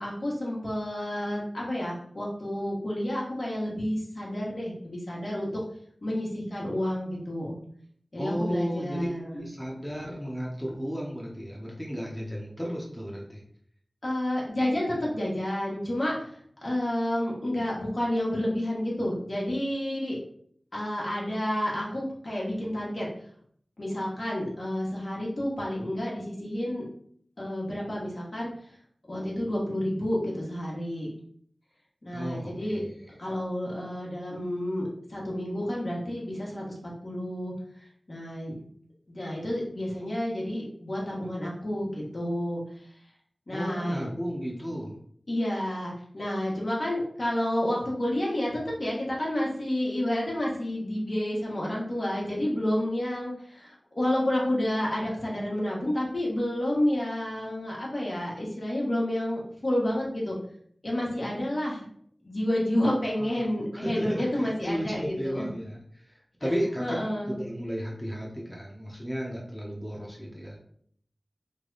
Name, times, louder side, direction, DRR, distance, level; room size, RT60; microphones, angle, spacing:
voice 1, 0.0-5.5 6.0-7.6 8.1-9.4 14.0-20.2 20.7-23.1 23.8-26.8 27.4-28.5 29.1-31.1 32.0-32.8 33.2-34.8 35.1-37.5 38.1-38.5 39.1-42.6 43.5-44.1 45.3-60.4 60.8-61.9 62.2-65.5 66.4-66.5 66.8-67.3, left 1 dB, 55° left, -4 dB, 1.3 m, -30 dB
voice 2, 8.2-13.4 32.1-33.1 43.5-44.9 63.2-63.5 63.7-70.6, equal, 5° left, -3 dB, 0.8 m, -34 dB
3.3 x 2.3 x 3.9 m, 0.63 s
wide cardioid pair, 55°, 0 cm